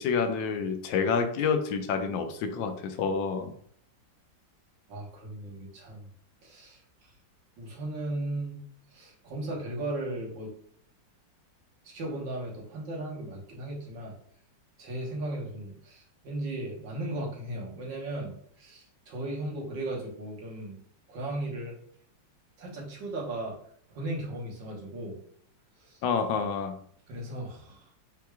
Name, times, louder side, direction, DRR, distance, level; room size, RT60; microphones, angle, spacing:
voice 1, 0.0-3.5 26.0-26.8, left 5 dB, 85° left, 7 dB, 1.4 m, -28 dB
voice 2, 4.9-6.1 6.4-6.8 7.6-8.6 8.9-10.5 11.8-14.1 14.8-20.8 21.1-21.7 22.6-23.6 23.9-25.2 25.8-26.0 27.1-27.9, right 1 dB, 75° right, -2 dB, 1.9 m, -36 dB
6.9 x 3.1 x 2.3 m, 0.63 s
omnidirectional pair, 2.0 m